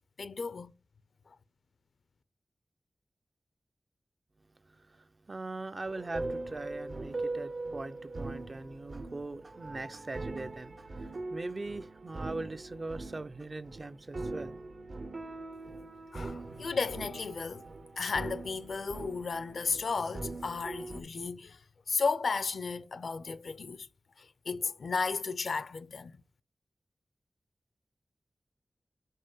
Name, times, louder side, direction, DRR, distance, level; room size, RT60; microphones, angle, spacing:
voice 1, 0.2-0.7 1.3-1.4 16.1-17.6 18.0-21.6 21.9-23.9 24.2-26.2, left 4 dB, 75° left, 0.5 m, -34 dB
voice 2, 4.6-14.5, right 2 dB, 35° right, 0.5 m, -41 dB
sound 1, 5.9-21.0, right 2 dB, 55° right, 0.8 m, -41 dB
5.5 x 5.3 x 5.5 m
wide cardioid pair, 120°, 0 cm